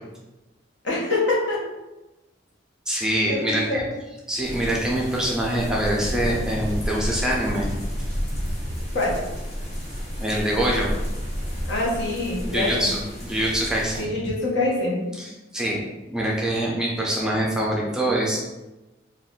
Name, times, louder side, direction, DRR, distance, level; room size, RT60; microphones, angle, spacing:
voice 1, 0.8-1.7 3.3-3.8 8.9-9.2 11.7-12.9 14.0-15.1, left 2 dB, 70° left, -4 dB, 0.8 m, -25 dB
voice 2, 2.9-3.9 4.3-7.7 10.2-10.9 12.4-14.1 15.2-18.5, right 1 dB, 5° right, -4 dB, 0.4 m, -25 dB
sound 1, 4.4-14.0, equal, 35° left, 0.8 m, -31 dB
2.5 x 2.3 x 3.6 m, 1.1 s
head